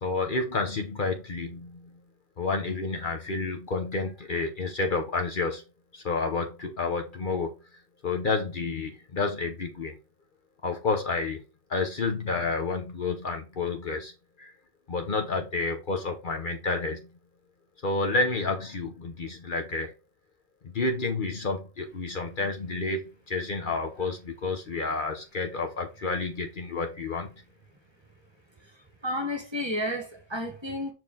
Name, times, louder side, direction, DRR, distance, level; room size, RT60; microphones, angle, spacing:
voice 1, 0.0-2.0 2.4-5.6 5.9-7.5 8.0-10.0 10.6-11.4 11.7-14.1 14.4-14.5 14.9-17.0 17.8-19.9 20.6-27.3, left 3 dB, 50° left, 1.0 m, -30 dB
voice 2, 29.0-30.9, left 1 dB, 25° right, 1.2 m, -31 dB
6.0 x 4.6 x 3.7 m
omnidirectional pair, 1.1 m